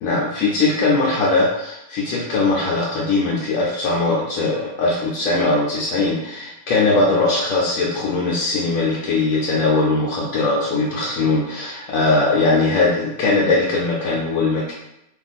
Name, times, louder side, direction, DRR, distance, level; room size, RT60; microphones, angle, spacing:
voice 1, 0.0-14.7, left 3 dB, 90° left, -5 dB, 1.0 m, -20 dB
2.5 x 2.4 x 4.0 m, 0.85 s
omnidirectional pair, 1.3 m